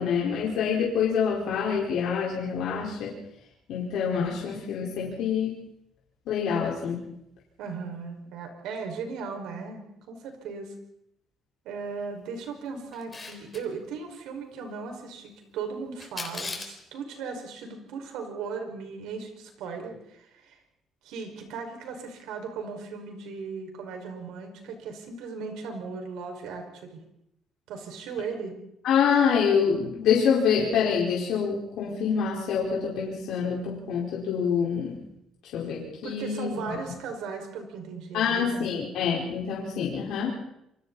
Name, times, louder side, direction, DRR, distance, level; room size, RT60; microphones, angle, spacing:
voice 1, 0.0-3.1 3.7-5.5 6.3-7.0 28.8-35.0 35.5-36.7 38.1-40.3, left 7 dB, 75° left, -4 dB, 4.6 m, -26 dB
voice 2, 7.6-10.7 11.6-20.6 21.0-27.0 27.7-28.6 36.0-38.8, right 5 dB, 85° right, 4 dB, 5.4 m, -37 dB
Camera, 12.9-13.6 16.0-16.8, left 3 dB, 20° left, 3.7 m, -36 dB
27.5 x 24.5 x 4.2 m, 0.79 s
cardioid pair, 145°, 0 cm